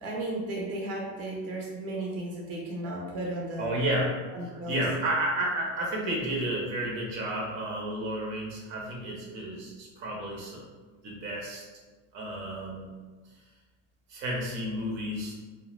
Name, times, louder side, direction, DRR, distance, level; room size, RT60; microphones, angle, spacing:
voice 1, 0.0-3.7 4.3-4.8, right 1 dB, 40° right, -3 dB, 0.6 m, -34 dB
voice 2, 3.6-4.1 4.4-10.6 11.0-11.6 12.1-12.9 14.1-15.3, right 1 dB, 85° right, -3 dB, 0.9 m, -31 dB
2.2 x 2.1 x 3.0 m, 1.3 s
supercardioid pair, 135°, 37 cm